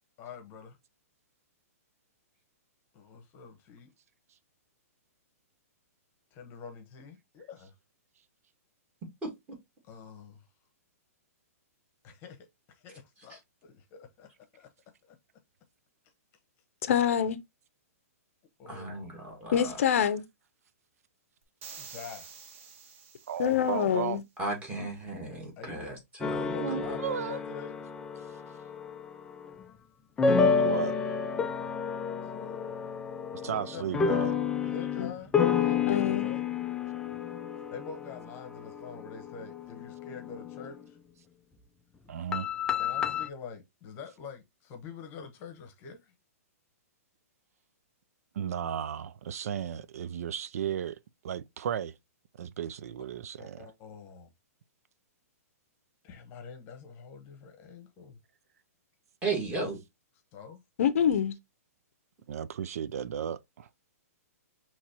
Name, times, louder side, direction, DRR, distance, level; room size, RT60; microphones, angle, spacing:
voice 1, 0.2-0.8 2.9-3.9 6.3-7.7 9.8-10.4 12.0-14.7 15.0-15.2 18.6-19.2 21.8-22.3 25.6-25.9 26.3-27.7 32.2-32.6 33.4-33.8 34.6-35.3 35.6-36.5 37.7-41.0 42.8-46.1 53.4-54.3 56.0-58.1 60.3-60.6, left 6 dB, 25° left, 1.0 m, -46 dB
voice 2, 9.2-9.6 13.3-13.4 18.7-19.8 24.4-26.5 26.8-26.9 59.2-59.8, right 3 dB, 15° right, 1.9 m, -35 dB
voice 3, 16.8-17.4 19.5-20.2 23.4-24.2 35.0-35.1 35.9-36.3 60.8-61.3, left 9 dB, 60° left, 0.6 m, -26 dB
sound 1, 21.6-23.9, right 6 dB, 50° right, 1.1 m, -48 dB
voice 4, 23.3-24.2 26.6-27.4 30.6-31.0 33.4-34.4 42.1-42.5 48.4-51.0 51.2-52.0 52.4-53.7 62.3-63.7, right 9 dB, 70° right, 0.3 m, -34 dB
sound 2, 26.2-29.6 30.2-40.8 42.3-43.3, left 6 dB, 10° left, 0.3 m, -30 dB
5.9 x 3.0 x 2.8 m
hypercardioid pair, 155°, 8 cm